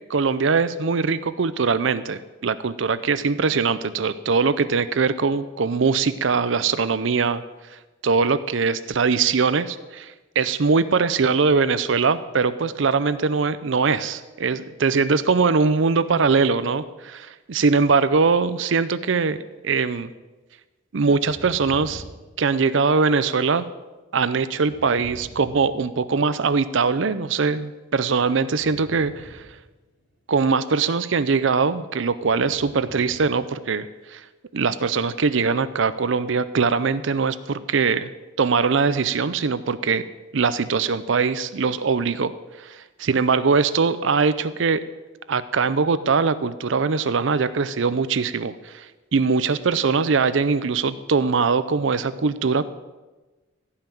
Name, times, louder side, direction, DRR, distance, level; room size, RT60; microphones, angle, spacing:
voice 1, 0.1-7.4 8.0-19.4 19.6-20.1 20.9-22.0 22.4-23.7 24.1-29.4 30.3-34.2 34.5-38.1 38.4-40.1 40.3-44.8 45.3-52.7, right 5 dB, 65° right, 14 dB, 0.5 m, -22 dB
sound 1, 21.1-23.0 24.5-26.4 28.5-30.2 32.2-33.5 33.7-33.8, right 1 dB, 60° left, 2.8 m, -45 dB
15.5 x 5.8 x 9.1 m, 1.2 s
head